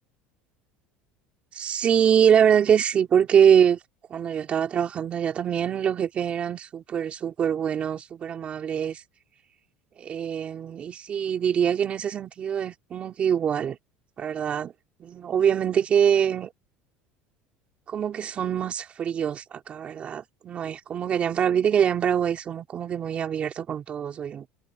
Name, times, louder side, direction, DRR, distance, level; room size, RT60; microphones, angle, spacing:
voice 1, 1.5-3.8 4.1-9.0 10.0-13.8 14.2-14.7 15.0-16.5 17.9-24.5, right 8 dB, 35° right, 3.3 m, -24 dB
cardioid pair, 130°, 4 cm